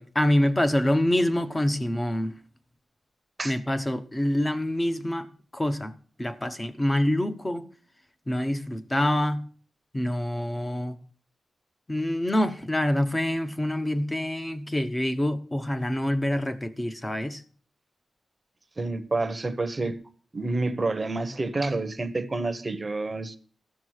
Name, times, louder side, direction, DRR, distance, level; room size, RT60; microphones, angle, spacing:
voice 1, 0.0-2.3 3.4-5.3 5.5-5.9 6.2-7.7 8.3-9.4 9.9-11.0 11.9-17.4, left 1 dB, 15° left, 0.8 m, -26 dB
voice 2, 18.8-20.0 20.3-23.4, right 2 dB, 20° right, 0.9 m, -28 dB
14.0 x 6.7 x 6.4 m
wide cardioid pair, 170°, 0 cm